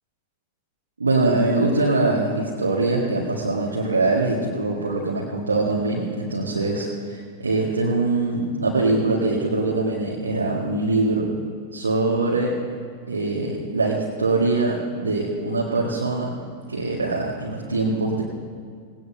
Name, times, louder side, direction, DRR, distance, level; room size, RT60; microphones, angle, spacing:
voice 1, 1.0-11.3 11.7-12.5 13.1-16.3 16.7-18.2, right 2 dB, 75° right, -4 dB, 1.7 m, -23 dB
19.0 x 18.0 x 2.8 m, 2.1 s
figure-of-eight pair, 90°, 0 cm